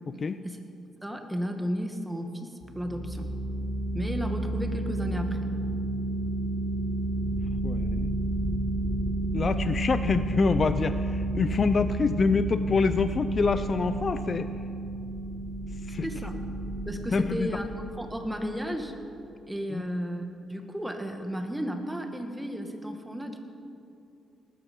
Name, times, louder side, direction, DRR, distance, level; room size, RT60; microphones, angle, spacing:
voice 1, 1.0-3.3 3.9-5.4 16.0-16.4 16.9-17.7 18.0-18.9 19.5-23.4, equal, 10° right, 5 dB, 1.8 m, -33 dB
sound 1, 2.6-18.9, right 1 dB, 20° left, 4.6 m, -31 dB
voice 2, 7.6-8.1 9.3-14.5 15.9-16.1 17.1-17.6 19.7-19.8, left 5 dB, 40° left, 12 dB, 0.5 m, -26 dB
19.0 x 12.5 x 5.4 m, 2.7 s
cardioid pair, 90°, 0 cm